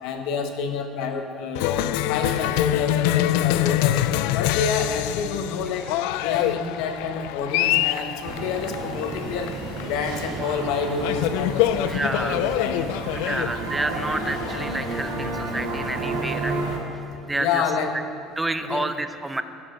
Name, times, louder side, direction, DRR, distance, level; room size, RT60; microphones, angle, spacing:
voice 1, 0.0-4.0 4.3-5.9 6.2-9.5 9.8-12.8 13.3-13.7 17.4-18.0 18.6-18.9, left 5 dB, 60° left, 5 dB, 1.1 m, -28 dB
Cheering, 1.5-16.7, left 14 dB, 75° left, 0.3 m, -26 dB
sound 1, 8.2-16.8, right 2 dB, 80° right, 2.5 m, -31 dB
voice 2, 11.9-12.4 13.1-16.6 17.3-17.6 18.4-19.4, right 2 dB, 5° right, 10 dB, 0.4 m, -29 dB
15.5 x 7.5 x 5.1 m, 2.7 s
cardioid pair, 180°, 0 cm